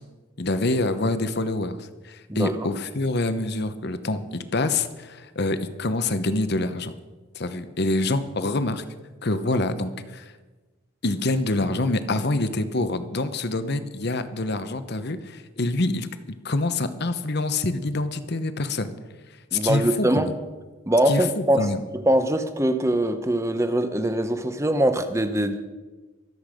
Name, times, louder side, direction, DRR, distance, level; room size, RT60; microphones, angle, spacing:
voice 1, 0.4-6.9 7.3-8.8 9.2-10.3 11.0-16.1 16.4-18.9 19.5-20.3 21.1-21.8, left 2 dB, 50° left, 11 dB, 0.9 m, -26 dB
voice 2, 19.5-20.3 20.9-21.7 21.9-25.6, right 1 dB, 15° right, 9 dB, 0.9 m, -22 dB
24.0 x 8.1 x 5.1 m, 1.2 s
head